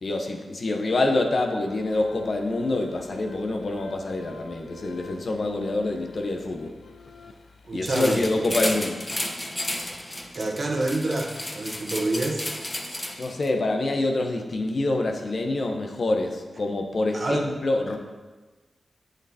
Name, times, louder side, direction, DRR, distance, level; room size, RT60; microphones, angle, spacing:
voice 1, 0.0-6.7 7.7-9.0 13.2-18.0, left 2 dB, 60° left, 3 dB, 0.9 m, -26 dB
sound 1, 1.7-8.7, left 4 dB, 75° left, 0.5 m, -48 dB
voice 2, 7.6-8.2 10.3-12.4 17.1-17.4, right 2 dB, 55° right, 1 dB, 1.2 m, -27 dB
sound 2, 7.8-13.5, left 1 dB, 20° left, 0.9 m, -33 dB
7.9 x 6.7 x 2.8 m, 1.2 s
supercardioid pair, 40°, 0 cm